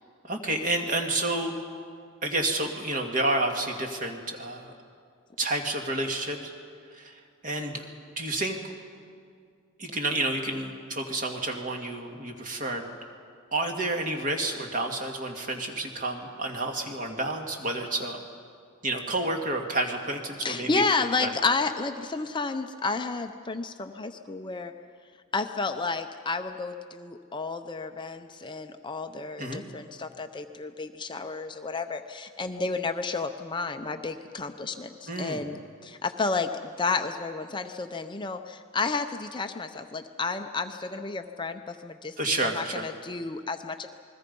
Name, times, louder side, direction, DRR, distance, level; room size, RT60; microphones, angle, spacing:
voice 1, 0.2-1.5 2.2-4.7 5.4-6.5 6.9-7.9 8.2-8.6 9.8-12.8 13.5-18.2 18.8-20.8 21.2-21.3 29.4-29.6 35.1-35.4 42.2-42.9, right 2 dB, 40° right, 3 dB, 2.1 m, -30 dB
voice 2, 20.4-24.7 25.3-42.2 42.5-43.9, left 4 dB, 20° left, 7 dB, 0.6 m, -31 dB
28.5 x 21.0 x 5.4 m, 2.2 s
head